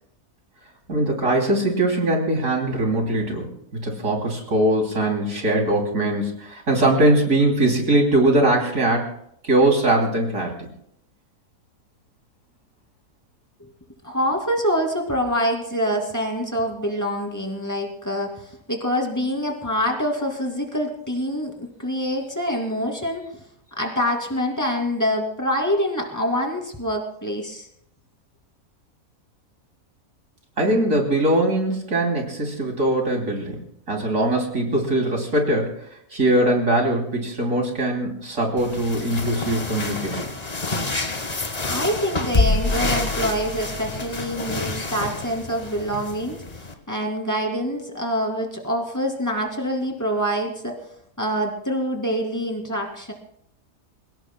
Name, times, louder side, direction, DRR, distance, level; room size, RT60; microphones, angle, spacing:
voice 1, 0.9-9.1 9.4-10.7 30.6-35.8 36.1-40.2, right 1 dB, 65° right, 1 dB, 3.4 m, -21 dB
voice 2, 14.0-18.3 18.7-23.2 23.8-27.7 41.6-50.8 51.2-53.1, equal, 10° left, 1 dB, 2.5 m, -25 dB
sound 1, 38.6-46.7, left 3 dB, 30° left, 1.2 m, -27 dB
28.0 x 17.5 x 2.2 m, 0.72 s
omnidirectional pair, 1.5 m